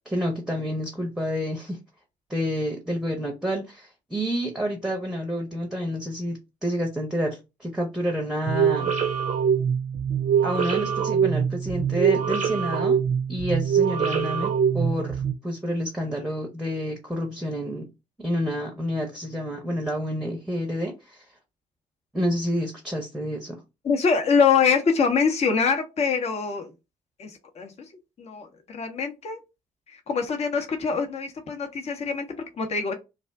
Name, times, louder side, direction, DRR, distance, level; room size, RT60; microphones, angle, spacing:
voice 1, 0.1-1.8 2.3-8.9 10.4-13.0 13.3-17.9 18.2-21.2 22.1-23.6, equal, 5° right, 0.8 m, -29 dB
sound 1, 8.5-15.3, right 7 dB, 40° right, 0.6 m, -24 dB
voice 2, 23.8-26.7 27.2-27.7 28.2-29.4 29.9-32.9, left 5 dB, 35° left, 0.7 m, -24 dB
2.5 x 2.1 x 3.4 m
figure-of-eight pair, 45°, 18 cm